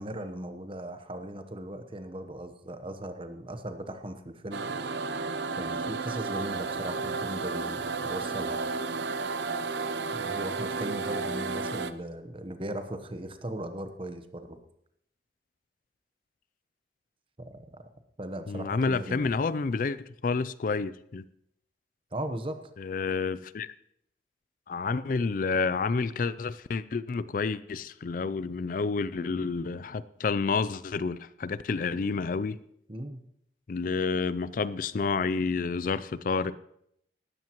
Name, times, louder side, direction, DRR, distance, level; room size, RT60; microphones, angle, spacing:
voice 1, 0.0-4.7 5.6-8.6 10.1-14.6 17.4-17.8 18.2-19.4 22.1-22.6 32.9-33.2, right 1 dB, 30° right, 8 dB, 1.0 m, -38 dB
sound 1, 4.5-11.9, right 4 dB, 75° right, 0.7 m, -32 dB
voice 2, 18.5-21.3 22.8-23.7 24.7-32.6 33.7-36.6, left 4 dB, 50° left, 17 dB, 0.4 m, -29 dB
18.5 x 13.0 x 3.0 m, 0.74 s
head